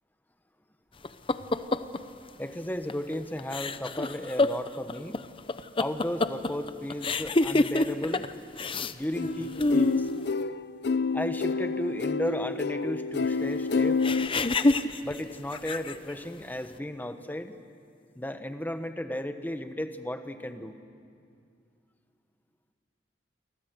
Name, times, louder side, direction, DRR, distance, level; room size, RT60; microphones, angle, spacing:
sound 1, 1.0-2.0 2.9-3.1 3.4-8.3 8.6-8.9 9.2-10.1 14.0-16.1, left 2 dB, 30° left, 0.7 m, -27 dB
voice 1, 2.4-5.2 5.8-8.3 8.9-10.1 11.1-14.0 15.0-17.6 18.1-20.8, left 1 dB, 10° left, 8 dB, 1.2 m, -34 dB
sound 2, 9.1-14.3, left 4 dB, 65° left, 0.6 m, -28 dB
29.0 x 24.0 x 8.0 m, 2.3 s
head